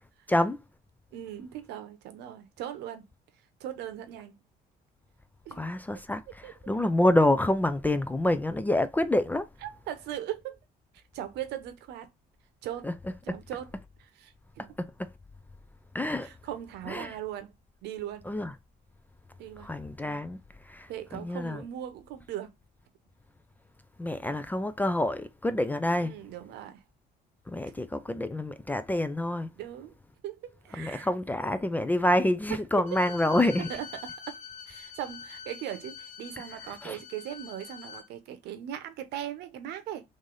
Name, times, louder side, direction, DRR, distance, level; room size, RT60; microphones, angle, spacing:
voice 1, 0.3-0.6 5.6-9.5 12.8-12.9 14.8-15.1 15.9-16.3 16.9-17.1 18.3-18.5 19.6-20.4 20.6-21.6 24.0-26.1 27.5-29.5 30.8-33.7 36.8-37.0, left 1 dB, 10° left, 0.3 m, -27 dB
voice 2, 1.1-3.1 3.6-4.3 5.5-5.7 6.4-6.5 9.6-10.6 11.1-12.1 12.6-12.9 13.2-13.7 14.0-14.7 16.2-17.5 17.8-18.3 19.4-19.7 20.9-22.5 26.0-26.8 27.6-27.7 29.6-29.9 30.2-31.1 33.7-34.4 34.7-40.0, right 11 dB, 80° right, 0.8 m, -39 dB
Bowed string instrument, 32.9-38.1, left 7 dB, 45° left, 1.0 m, -45 dB
3.2 x 2.6 x 3.8 m
cardioid pair, 110°, 17 cm